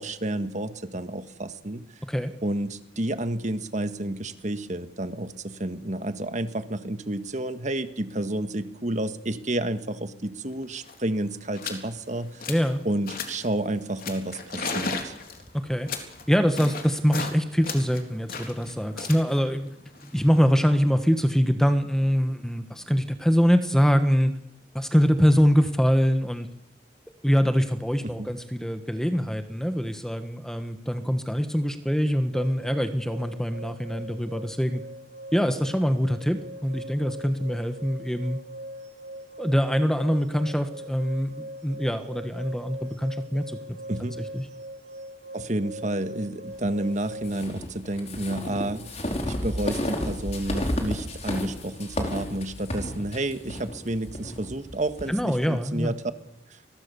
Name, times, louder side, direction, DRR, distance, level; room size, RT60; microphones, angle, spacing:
voice 1, 0.0-1.8 2.4-12.5 12.8-15.1 28.0-28.3 43.9-44.2 45.3-56.0 56.5-56.6, right 1 dB, 40° right, 9 dB, 1.7 m, -30 dB
sound 1, 10.5-10.6 10.8-11.1 11.5-11.9 12.2-12.7 13.1-13.5 14.0-17.4 17.6-20.7, left 4 dB, 50° left, 3.7 m, -35 dB
voice 2, 12.5-12.8 15.5-15.9 16.3-19.7 20.0-24.3 24.7-26.5 27.2-34.8 35.3-38.4 39.4-43.8 44.2-44.5 55.1-55.9, equal, 5° left, 8 dB, 1.4 m, -24 dB
sound 2, 32.3-47.4, right 1 dB, 65° right, 4.1 m, -42 dB
sound 3, 47.2-55.1, left 1 dB, 35° left, 4.8 m, -32 dB
29.5 x 21.5 x 7.0 m, 0.81 s
head